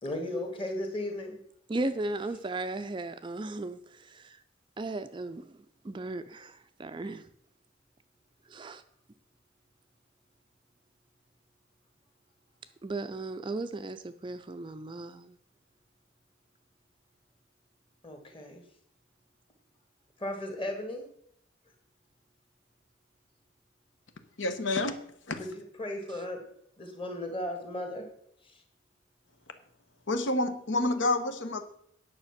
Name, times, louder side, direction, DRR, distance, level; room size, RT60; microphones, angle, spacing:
voice 1, 0.0-1.4 18.0-18.6 20.2-21.0 25.4-26.4 26.8-28.1 28.4-28.6, left 1 dB, 25° left, 1.7 m, -36 dB
voice 2, 1.7-4.4 4.8-5.5 5.8-7.2 8.5-8.8 12.8-15.3, right 2 dB, 25° right, 0.4 m, -36 dB
voice 3, 24.4-25.0 25.3-25.4 30.1-31.6, left 2 dB, 75° left, 1.0 m, -28 dB
9.7 x 6.5 x 5.9 m
head